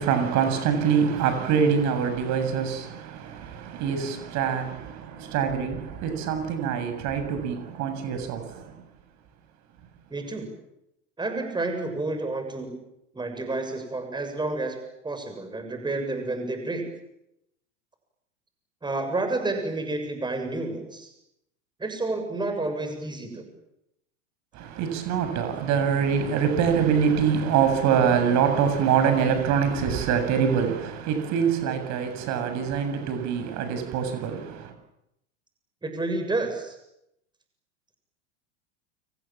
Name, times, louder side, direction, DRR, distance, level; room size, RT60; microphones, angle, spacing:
voice 1, 0.0-8.7 24.5-34.7, right 7 dB, 50° right, 7.7 m, -25 dB
voice 2, 10.1-10.5 11.2-12.8 13.1-14.8 15.0-16.9 18.8-21.1 21.8-23.5 35.8-36.8, right 2 dB, 10° right, 6.9 m, -30 dB
30.0 x 26.5 x 7.5 m
hypercardioid pair, 95°, 37 cm